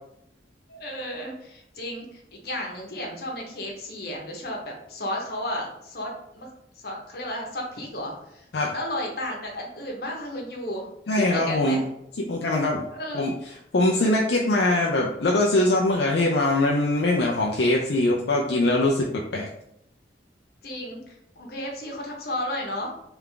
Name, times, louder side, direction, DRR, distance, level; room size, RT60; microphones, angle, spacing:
voice 1, 0.7-6.5 6.8-11.8 12.9-13.2 20.6-22.9, left 1 dB, 60° left, 0 dB, 1.1 m, -33 dB
voice 2, 11.1-11.8 12.2-12.9 13.1-13.3 13.7-19.5, left 2 dB, 75° left, -2 dB, 0.5 m, -22 dB
3.5 x 3.4 x 3.8 m, 0.77 s
head